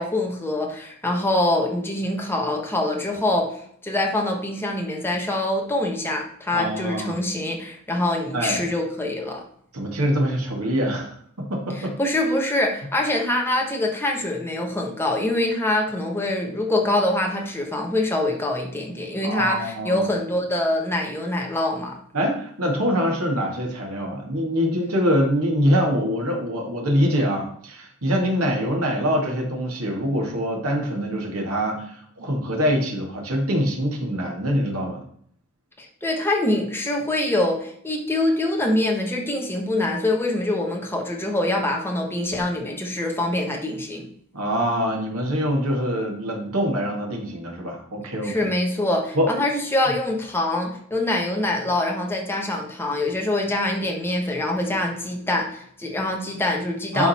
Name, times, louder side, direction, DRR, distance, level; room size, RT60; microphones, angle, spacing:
voice 1, 0.0-3.5 3.8-9.4 12.0-22.0 35.8-44.1 48.2-57.1, left 1 dB, 10° left, 0 dB, 1.3 m, -24 dB
voice 2, 6.5-7.2 8.3-8.7 9.7-12.0 12.5-12.6 19.2-20.1 22.1-35.0 44.3-48.5 49.1-49.3 56.9-57.1, equal, 75° right, 1 dB, 2.1 m, -24 dB
11.5 x 4.0 x 4.3 m, 0.64 s
head